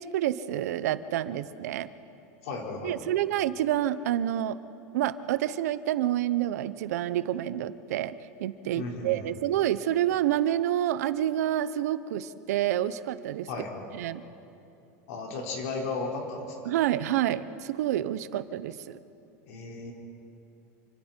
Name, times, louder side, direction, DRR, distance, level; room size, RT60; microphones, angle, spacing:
voice 1, 0.0-1.9 2.8-4.6 4.9-13.5 13.9-14.2 16.7-19.0, right 12 dB, 85° right, 14 dB, 0.8 m, -28 dB
voice 2, 2.4-2.9 8.7-9.3 13.5-13.7 15.1-16.7 19.4-19.9, left 3 dB, 70° left, -1 dB, 4.8 m, -35 dB
27.5 x 26.0 x 4.5 m, 2.7 s
supercardioid pair, 160°, 8 cm